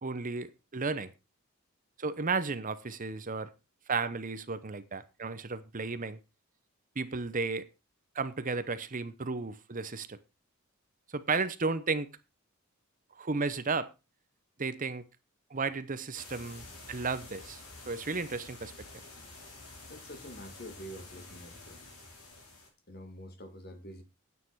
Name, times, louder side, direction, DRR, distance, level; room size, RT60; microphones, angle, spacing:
voice 1, 0.0-1.1 2.0-3.5 3.9-6.2 7.0-7.7 8.1-10.2 11.1-12.1 13.2-13.9 14.6-15.0 15.5-18.7, right 4 dB, 40° right, 0.8 m, -33 dB
sound 1, 16.1-22.7, left 2 dB, 90° left, 4.8 m, -49 dB
voice 2, 19.9-21.8 22.9-24.0, equal, 45° left, 2.1 m, -46 dB
9.7 x 9.1 x 4.7 m
head